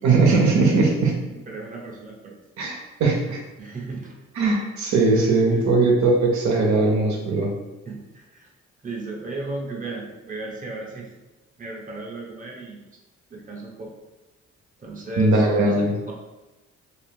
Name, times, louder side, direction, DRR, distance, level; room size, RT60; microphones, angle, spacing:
voice 1, 0.0-1.2 2.6-3.4 4.4-7.5 15.2-15.9, right 3 dB, 70° right, -1 dB, 0.7 m, -19 dB
voice 2, 1.3-2.4 3.6-4.2 5.5-5.6 7.9-8.5 8.8-11.1 11.6-12.8 13.3-13.9 14.8-16.1, right 2 dB, 25° right, -2 dB, 0.8 m, -35 dB
2.5 x 2.4 x 3.4 m, 1.0 s
cardioid pair, 90°, 30 cm